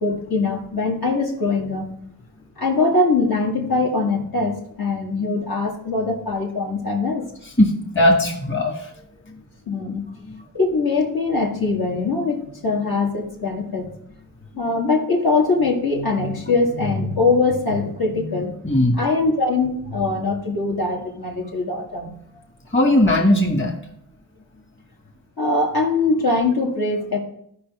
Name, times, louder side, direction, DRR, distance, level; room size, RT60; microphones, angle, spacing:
voice 1, 0.0-1.9 2.6-7.3 9.7-10.0 10.5-13.9 14.6-18.5 19.0-22.2 25.4-27.2, left 3 dB, 70° left, -1 dB, 1.8 m, -22 dB
voice 2, 7.6-8.9 9.3-9.4 10.3-10.4 18.6-19.0 22.7-23.8, left 1 dB, 30° left, 1 dB, 1.5 m, -18 dB
14.5 x 5.3 x 3.6 m, 0.73 s
wide cardioid pair, 100°, 37 cm